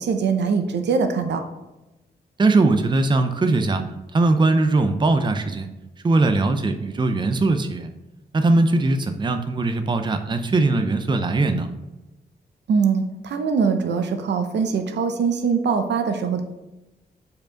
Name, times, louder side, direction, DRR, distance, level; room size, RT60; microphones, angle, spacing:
voice 1, 0.0-1.4 12.7-16.4, right 5 dB, 80° right, 7 dB, 0.8 m, -22 dB
voice 2, 2.4-3.8 4.1-5.7 6.0-7.9 8.3-11.7, right 2 dB, 25° right, 7 dB, 0.6 m, -20 dB
5.2 x 4.6 x 5.7 m, 1.0 s
cardioid pair, 110°, 18 cm